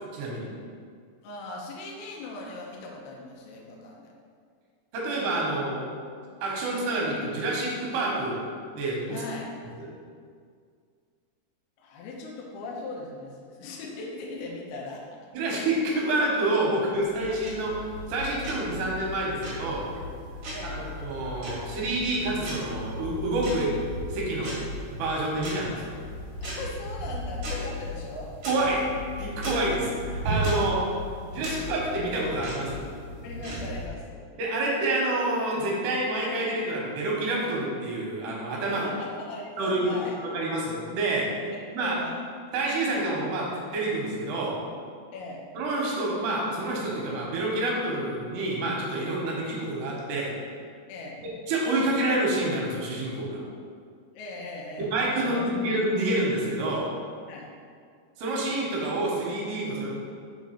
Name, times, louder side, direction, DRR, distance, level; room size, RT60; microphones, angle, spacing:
voice 1, 0.1-0.5 4.9-5.9 6.4-8.4 8.7-9.2 9.8-9.9 15.3-17.7 18.1-19.9 20.7-23.7 24.1-24.6 24.9-25.9 28.5-28.8 29.2-30.8 31.3-32.9 34.4-38.8 39.6-39.9 40.3-41.3 41.7-42.0 42.5-44.6 45.5-50.3 51.5-53.4 54.8-56.9 58.2-59.9, right 2 dB, 90° right, -3 dB, 3.3 m, -28 dB
voice 2, 1.2-4.1 9.1-9.5 11.8-15.2 20.5-20.9 26.4-28.3 33.2-34.3 38.7-40.2 41.5-42.2 45.1-45.5 50.9-51.2 54.1-55.4 57.3-57.5, left 2 dB, 80° left, -2 dB, 2.6 m, -39 dB
sound 1, 16.9-33.9, equal, 65° right, 3.4 m, -36 dB
7.2 x 3.1 x 5.7 m, 2.1 s
omnidirectional pair, 4.5 m